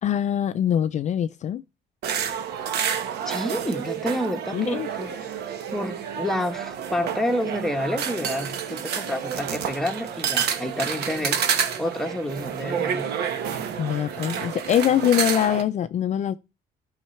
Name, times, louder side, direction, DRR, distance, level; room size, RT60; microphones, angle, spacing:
voice 1, 0.0-1.6 4.5-4.9 13.8-16.4, left 10 dB, 45° left, 0.4 m, -23 dB
sound 1, 2.0-15.6, right 8 dB, 75° right, 1.2 m, -29 dB
voice 2, 3.2-5.3 5.7-13.1, left 1 dB, ahead, 1.1 m, -29 dB
12.5 x 5.6 x 3.2 m
cardioid pair, 110°, 17 cm